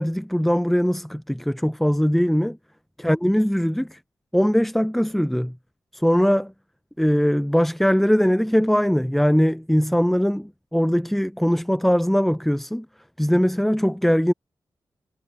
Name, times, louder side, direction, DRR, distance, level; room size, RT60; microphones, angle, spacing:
voice 1, 0.0-2.6 3.0-4.0 4.3-5.6 5.9-6.5 7.0-12.9 13.2-14.3, equal, ahead, 0.4 m, -21 dB
cardioid pair, 60°, 9 cm